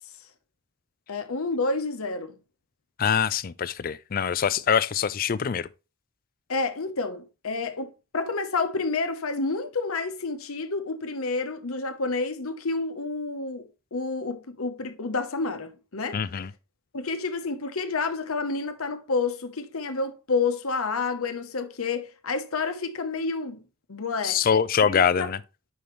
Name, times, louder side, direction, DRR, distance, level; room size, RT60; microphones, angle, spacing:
voice 1, 1.1-2.3 6.5-13.7 13.9-16.2 16.9-23.6 23.9-24.4 24.8-25.3, left 3 dB, 85° left, 1.0 m, -29 dB
voice 2, 3.0-5.7 16.1-16.5 24.2-25.4, left 7 dB, 40° left, 0.4 m, -24 dB
8.5 x 5.5 x 3.2 m
head